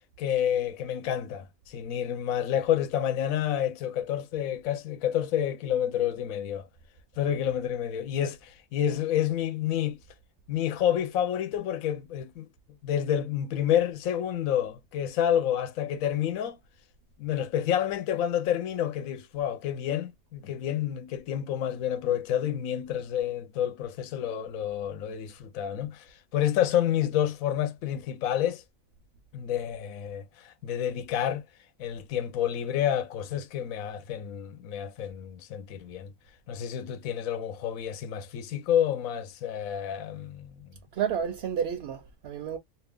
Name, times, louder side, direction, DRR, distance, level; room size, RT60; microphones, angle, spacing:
voice 1, 0.2-6.7 7.2-10.0 10.5-12.5 12.8-16.6 17.2-26.1 26.3-28.6 29.3-31.4 31.8-36.1 36.5-40.7, left 10 dB, 80° left, 1.1 m, -29 dB
voice 2, 40.9-42.6, right 8 dB, 65° right, 0.7 m, -30 dB
2.8 x 2.3 x 3.4 m
omnidirectional pair, 1.4 m